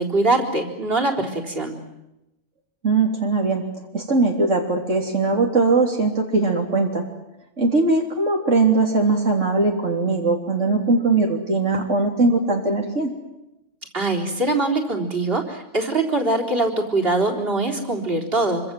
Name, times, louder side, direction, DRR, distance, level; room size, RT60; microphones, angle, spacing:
voice 1, 0.0-1.8 13.9-18.7, right 2 dB, 50° right, 1 dB, 4.3 m, -22 dB
voice 2, 2.8-3.6 3.9-7.0 7.6-13.1, right 3 dB, 85° right, 1 dB, 3.8 m, -20 dB
26.0 x 25.5 x 7.8 m, 0.90 s
omnidirectional pair, 1.2 m